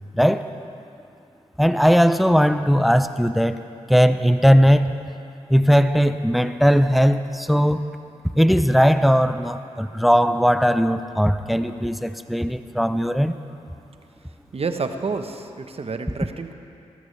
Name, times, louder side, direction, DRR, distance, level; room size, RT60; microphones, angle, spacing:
voice 1, 0.1-0.5 1.6-3.6 3.9-4.9 5.5-7.9 8.4-13.3, equal, ahead, 10 dB, 0.6 m, -18 dB
voice 2, 14.5-16.5, right 4 dB, 55° right, 7 dB, 1.0 m, -29 dB
19.0 x 13.0 x 3.3 m, 2.6 s
cardioid pair, 50°, 12 cm